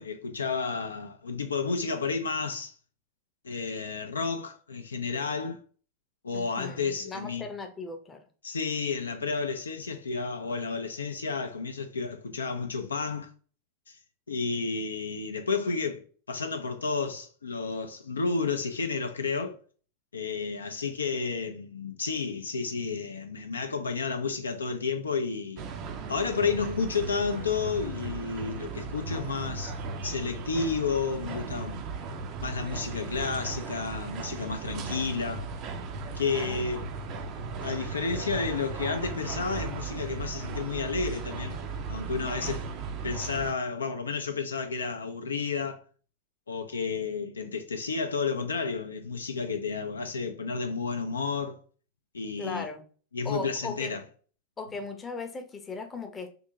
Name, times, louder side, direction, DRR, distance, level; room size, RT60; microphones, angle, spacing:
voice 1, 0.0-2.7 3.4-5.6 6.2-7.5 8.4-13.3 13.9-14.0 14.3-19.6 20.1-25.6 26.1-29.7 30.0-31.8 32.4-35.5 36.1-36.9 37.6-41.6 41.9-42.7 43.0-45.8 46.5-51.6 52.1-52.7 53.1-54.0, left 4 dB, 75° left, 0.3 m, -31 dB
voice 2, 6.3-8.2 36.3-37.0 52.4-52.8 53.2-54.0 54.6-56.3, left 4 dB, 15° left, 0.6 m, -38 dB
sound 1, 25.6-43.5, right 4 dB, 40° right, 0.4 m, -37 dB
3.4 x 2.5 x 2.8 m
figure-of-eight pair, 90°, 0 cm